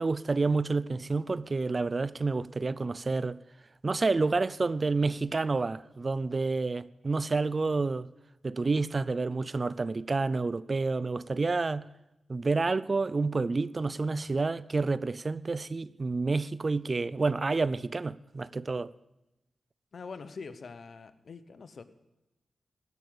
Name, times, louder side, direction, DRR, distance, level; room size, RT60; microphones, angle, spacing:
voice 1, 0.0-3.4 3.8-8.1 8.4-11.9 12.3-18.9, right 3 dB, 45° right, 0.5 m, -29 dB
voice 2, 19.9-21.8, left 4 dB, 65° left, 1.0 m, -44 dB
15.0 x 6.4 x 8.6 m
supercardioid pair, 40°, 0 cm